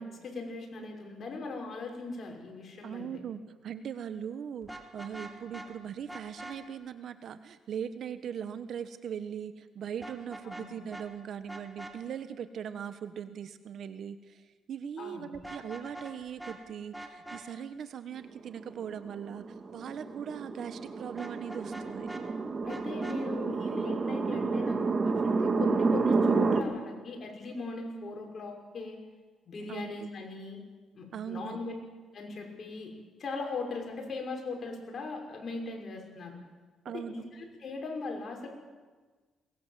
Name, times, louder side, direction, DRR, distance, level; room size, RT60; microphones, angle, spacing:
voice 1, 0.0-3.1 10.4-10.7 15.0-15.2 22.6-29.0 29.5-30.6 30.9-31.7 32.1-32.9 33.2-36.4 37.1-38.5, left 3 dB, 50° left, 1 dB, 6.1 m, -39 dB
voice 2, 2.8-22.1 29.7-30.1 31.1-31.6 36.8-37.2, right 8 dB, 65° right, 11 dB, 1.1 m, -40 dB
Vehicle horn car horn honking, 4.6-5.7 6.1-6.6 10.0-10.7 10.9-11.0 11.5-11.9 15.3-16.1 16.4-16.6 16.9-17.4 21.2-22.2 22.7-23.2, right 1 dB, 5° right, 2.9 m, -43 dB
sound 1, 18.6-26.6, right 4 dB, 40° right, 2.3 m, -29 dB
22.0 x 20.0 x 7.5 m, 1.4 s
cardioid pair, 90°, 0 cm